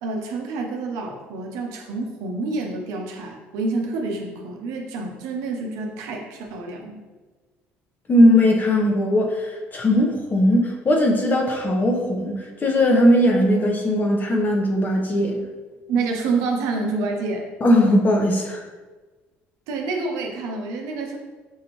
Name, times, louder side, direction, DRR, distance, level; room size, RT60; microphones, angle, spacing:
voice 1, 0.0-7.0 15.9-17.5 19.7-21.2, right 3 dB, 75° right, 1 dB, 0.7 m, -28 dB
voice 2, 8.1-15.4 17.6-18.6, left 1 dB, 30° left, 1 dB, 0.8 m, -19 dB
5.5 x 2.5 x 3.0 m, 1.3 s
supercardioid pair, 80°, 6 cm